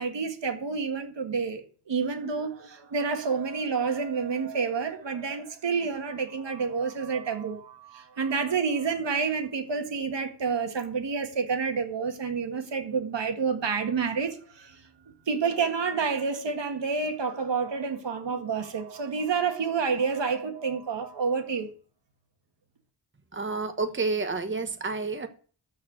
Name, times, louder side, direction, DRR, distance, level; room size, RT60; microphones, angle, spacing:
voice 1, 0.0-14.8 15.3-21.7, right 5 dB, 85° right, 1.7 m, -29 dB
voice 2, 23.3-25.3, right 3 dB, 30° right, 1.2 m, -29 dB
13.5 x 4.4 x 7.8 m
wide cardioid pair, 70°, 42 cm